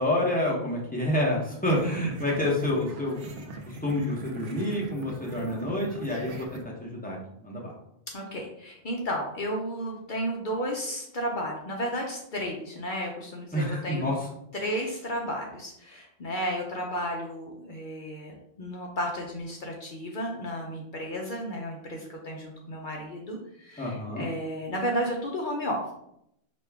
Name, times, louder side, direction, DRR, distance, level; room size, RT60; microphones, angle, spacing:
voice 1, 0.0-3.5 3.8-7.7 13.5-14.1 23.8-24.3, left 1 dB, 10° left, -3 dB, 0.8 m, -28 dB
sound 1, 1.6-6.6, right 3 dB, 85° right, 1.0 m, -42 dB
voice 2, 8.1-14.0 14.5-25.9, equal, 50° left, 0 dB, 0.7 m, -33 dB
4.9 x 2.3 x 3.5 m, 0.76 s
omnidirectional pair, 1.2 m